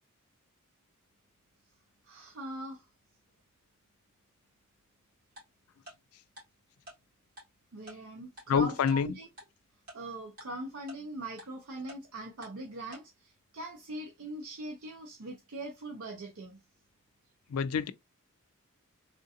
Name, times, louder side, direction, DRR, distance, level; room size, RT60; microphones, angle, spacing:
voice 1, 2.0-2.8 7.7-9.3 9.9-16.6, right 1 dB, 70° right, 0.7 m, -41 dB
Tick-tock, 5.4-5.5 5.9-6.0 6.4-6.5 6.9-7.0 7.4-7.5 7.9-8.0 8.4-8.5 8.9-9.0 9.4-9.5 9.9-10.0 10.4-10.5 10.9-11.0 11.4-11.5 11.9-12.0 12.4-12.5 12.9-13.0, equal, 40° right, 2.2 m, -47 dB
voice 2, 8.5-9.1 17.5-17.9, left 6 dB, 85° left, 0.3 m, -27 dB
3.6 x 2.5 x 2.7 m
head